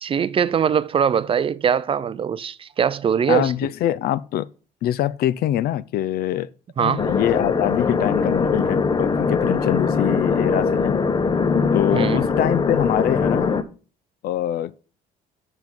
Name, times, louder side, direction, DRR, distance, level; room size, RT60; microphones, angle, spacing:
voice 1, 0.0-3.5 6.8-7.1 11.9-12.2, right 7 dB, 35° right, 0.4 m, -21 dB
voice 2, 3.3-4.5 4.8-6.5 6.8-11.0 11.7-13.6 14.2-14.7, left 12 dB, 65° left, 0.4 m, -24 dB
sound 1, 7.0-13.6, left 5 dB, 25° left, 0.7 m, -21 dB
7.5 x 5.4 x 4.6 m
cardioid pair, 110°, 17 cm